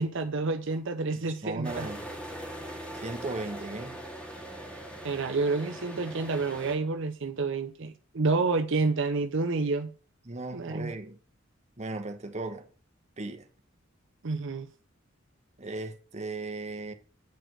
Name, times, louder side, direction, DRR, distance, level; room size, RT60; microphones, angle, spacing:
voice 1, 0.0-1.9 5.0-9.9 10.5-10.9 14.2-14.7, right 3 dB, 65° right, 0.7 m, -29 dB
voice 2, 1.2-2.0 2.9-4.0 10.2-11.2 11.8-12.7 13.2-13.5 15.6-16.9, right 2 dB, 35° right, 1.2 m, -37 dB
sound 1, 1.6-6.7, equal, 5° left, 2.3 m, -41 dB
9.2 x 5.1 x 6.2 m
head